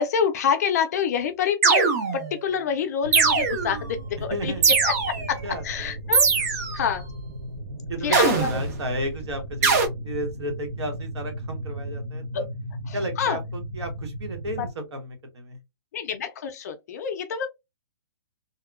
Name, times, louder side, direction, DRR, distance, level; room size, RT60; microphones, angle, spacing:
voice 1, 0.0-4.5 4.8-7.0 8.0-8.6 12.8-13.4 14.6-14.7 15.9-17.5, left 7 dB, 40° left, 0.4 m, -27 dB
sound 1, 1.6-2.4 3.1-3.8 4.6-5.3 6.1-6.8 8.1-8.7 9.6-9.9, right 5 dB, 35° right, 0.5 m, -21 dB
sound 2, 3.0-14.7, right 1 dB, 70° right, 0.8 m, -36 dB
voice 2, 4.2-4.8 5.4-6.2 7.9-12.5 12.9-15.6, equal, 85° right, 1.1 m, -33 dB
2.8 x 2.1 x 2.3 m
hypercardioid pair, 165°, 14 cm